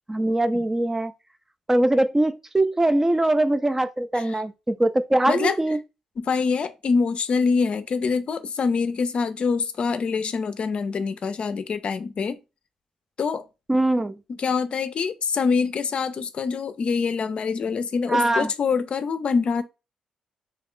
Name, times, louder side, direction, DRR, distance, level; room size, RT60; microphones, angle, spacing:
voice 1, 0.1-1.1 1.7-5.8 13.7-14.1 18.1-18.5, right 1 dB, 15° right, 0.4 m, -22 dB
voice 2, 5.3-5.6 6.2-12.4 13.2-13.4 14.4-19.6, left 5 dB, 55° left, 0.4 m, -25 dB
2.8 x 2.3 x 3.6 m
supercardioid pair, 55°, 2 cm